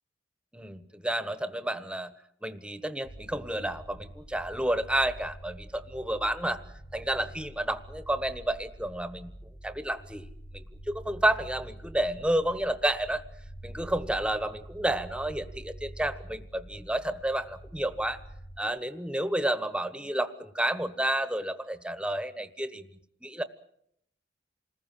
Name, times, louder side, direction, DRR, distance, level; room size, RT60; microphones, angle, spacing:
voice 1, 0.5-2.1 2.4-6.6 6.9-9.3 9.6-10.3 10.5-13.2 13.6-18.2 18.6-22.8 23.2-23.4, right 1 dB, 5° right, 11 dB, 1.3 m, -30 dB
sound 1, 3.0-18.6, right 1 dB, 55° left, 3.3 m, -46 dB
28.0 x 20.5 x 7.7 m, 0.74 s
head